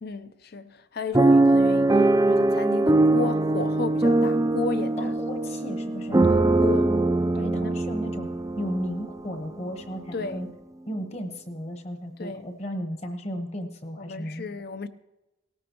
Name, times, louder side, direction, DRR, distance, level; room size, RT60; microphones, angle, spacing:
voice 1, 0.0-5.1 6.3-7.0 7.3-7.8 10.1-10.4 12.2-12.5 14.0-14.9, left 3 dB, 50° left, 0.6 m, -34 dB
sound 1, 1.1-9.3 9.9-10.0 10.2-10.5, right 2 dB, 15° right, 0.4 m, -22 dB
voice 2, 5.0-6.2 7.3-8.3 8.6-10.5 10.9-14.5, equal, 30° left, 1.1 m, -34 dB
18.0 x 14.0 x 3.0 m
head